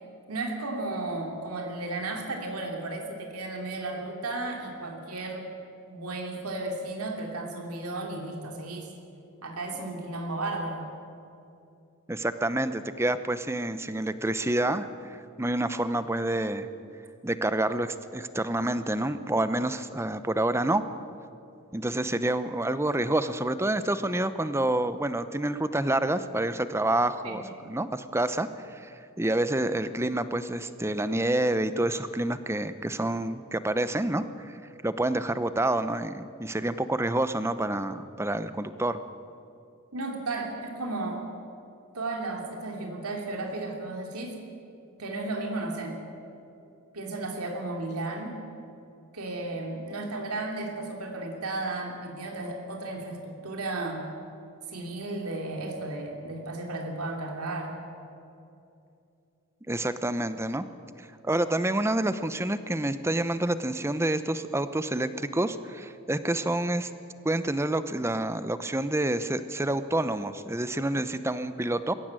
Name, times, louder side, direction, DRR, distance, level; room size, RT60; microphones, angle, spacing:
voice 1, 0.3-5.5 5.9-8.9 9.4-10.8 27.2-27.4 39.9-41.2 41.9-44.4 45.0-46.0 46.9-48.4 49.1-54.0 54.7-57.8, right 2 dB, 90° right, 2 dB, 3.1 m, -34 dB
voice 2, 12.1-16.7 17.2-20.8 21.7-34.6 34.8-39.0 59.7-60.7 61.0-66.9 67.2-71.9, right 1 dB, 10° right, 12 dB, 0.7 m, -28 dB
21.5 x 17.0 x 9.0 m, 2.7 s
head